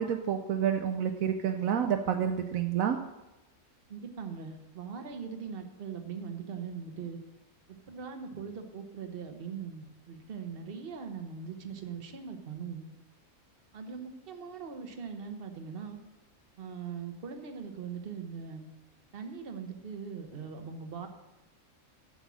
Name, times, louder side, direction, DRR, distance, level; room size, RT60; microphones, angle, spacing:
voice 1, 0.0-3.0, right 8 dB, 70° right, 6 dB, 1.0 m, -29 dB
voice 2, 3.9-7.2 7.9-12.9 13.7-16.0 16.6-18.7 19.1-21.1, right 6 dB, 45° right, 5 dB, 1.1 m, -41 dB
8.1 x 7.1 x 6.1 m, 1.0 s
omnidirectional pair, 1.5 m